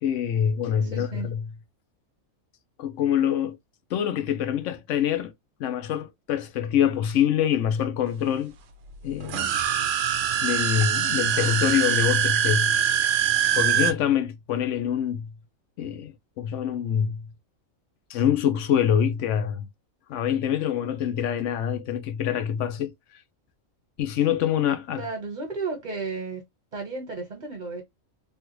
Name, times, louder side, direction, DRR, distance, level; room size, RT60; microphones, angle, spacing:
voice 1, 0.0-1.4 2.8-3.6 3.9-5.3 5.6-8.5 9.0-9.5 10.4-12.8 13.6-15.3 15.8-17.3 18.1-19.7 20.1-22.9 24.0-25.0, left 9 dB, 70° left, 0.9 m, -25 dB
voice 2, 0.8-1.3 25.0-26.4 26.7-27.8, right 4 dB, 35° right, 1.3 m, -33 dB
sound 1, 9.2-13.9, right 9 dB, 70° right, 0.9 m, -23 dB
3.4 x 2.4 x 2.9 m
omnidirectional pair, 1.4 m